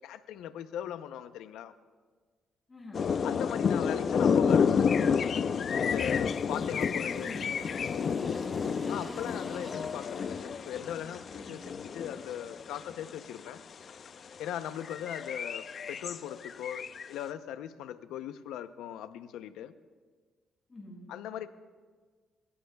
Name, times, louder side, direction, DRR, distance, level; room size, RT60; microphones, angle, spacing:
voice 1, 0.0-1.7 3.2-5.0 5.8-7.4 8.9-13.6 14.4-19.7 21.1-21.5, left 10 dB, 90° left, 11 dB, 0.7 m, -39 dB
voice 2, 2.7-3.2 4.0-4.1 6.4-7.6 8.0-8.3 11.3-11.7 20.7-21.1, left 1 dB, 25° left, -2 dB, 5.8 m, -46 dB
sound 1, 2.9-13.4 13.9-14.1 14.5-17.1, left 6 dB, 50° left, 0.5 m, -30 dB
Engine, 4.3-11.7, left 1 dB, 10° left, 2.7 m, -48 dB
27.0 x 16.0 x 2.3 m, 1.5 s
cardioid pair, 90°, 0 cm